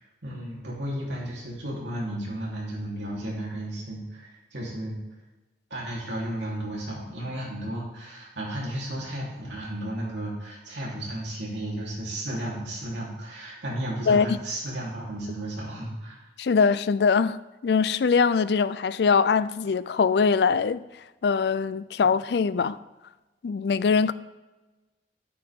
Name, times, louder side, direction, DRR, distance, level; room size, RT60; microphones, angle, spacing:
voice 1, 0.0-5.0 5.7-16.3 16.6-16.7, right 1 dB, 85° right, 3.4 m, -34 dB
voice 2, 14.1-14.4 16.4-17.4 17.6-20.8 21.2-22.8 23.4-24.1, left 5 dB, 70° left, 0.4 m, -22 dB
10.5 x 9.5 x 3.6 m
head